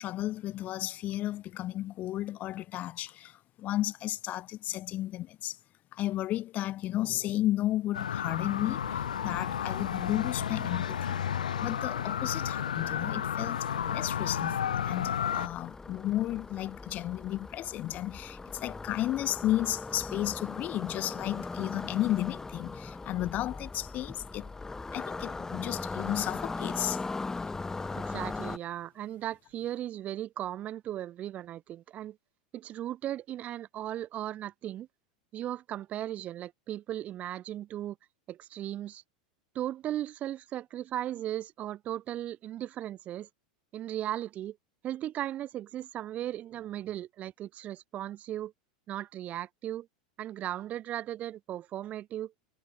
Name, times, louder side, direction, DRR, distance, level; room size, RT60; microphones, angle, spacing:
voice 1, 0.0-5.6 5.9-11.2 11.6-24.5 24.9-27.0, left 14 dB, 40° left, 0.6 m, -33 dB
sound 1, 7.9-15.5, left 9 dB, 90° left, 0.4 m, -32 dB
sound 2, 8.7-28.6, left 3 dB, 10° left, 1.3 m, -40 dB
voice 2, 28.0-32.2 32.5-34.9 35.3-38.0 38.3-39.0 39.5-43.3 43.7-44.6 44.8-48.5 48.9-49.9 50.2-52.3, right 12 dB, 40° right, 0.7 m, -37 dB
hypercardioid pair, 100°, 4 cm